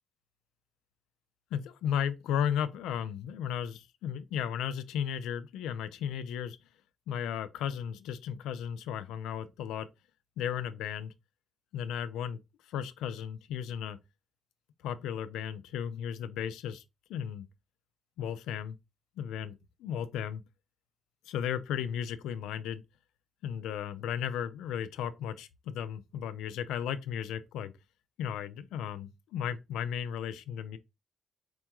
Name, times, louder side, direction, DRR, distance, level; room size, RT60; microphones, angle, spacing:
voice 1, 1.5-6.6 7.1-9.9 10.4-11.1 11.7-12.4 12.7-14.0 14.8-16.8 17.1-17.5 18.2-18.8 19.2-20.4 21.3-22.8 23.4-27.7 28.2-30.8, left 9 dB, 90° left, 0.4 m, -35 dB
4.3 x 2.3 x 2.9 m
cardioid pair, 90°, 0 cm